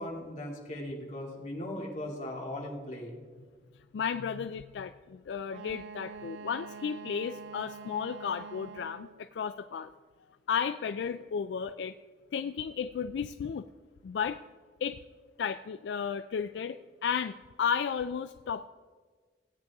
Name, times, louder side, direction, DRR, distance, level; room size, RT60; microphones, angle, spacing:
voice 1, 0.0-3.2, left 1 dB, 40° left, -2 dB, 2.2 m, -38 dB
voice 2, 3.9-9.9 10.5-11.9 12.3-13.7 14.0-14.4 14.8-15.0 15.4-18.7, left 7 dB, 75° left, 10 dB, 0.3 m, -33 dB
Wind instrument woodwind instrument, 5.5-9.2, right 5 dB, 75° right, 0.3 m, -45 dB
17.5 x 8.9 x 3.5 m, 1.5 s
head